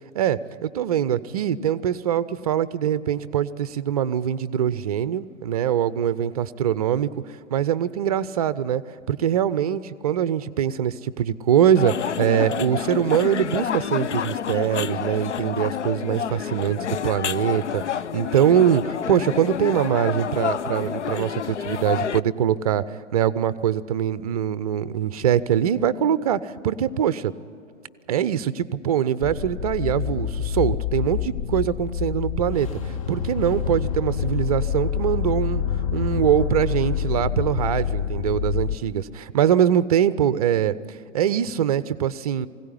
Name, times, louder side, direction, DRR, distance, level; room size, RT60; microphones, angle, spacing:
voice 1, 0.1-7.1 7.5-8.8 9.1-27.3 28.1-35.6 35.9-40.8 41.1-42.5, right 9 dB, 30° right, 17 dB, 0.5 m, -23 dB
sound 1, 11.8-22.2, left 8 dB, 70° left, 0.5 m, -29 dB
sound 2, 29.2-38.8, left 8 dB, 30° left, 0.6 m, -27 dB
20.0 x 16.5 x 9.9 m, 2.5 s
figure-of-eight pair, 115°, 36 cm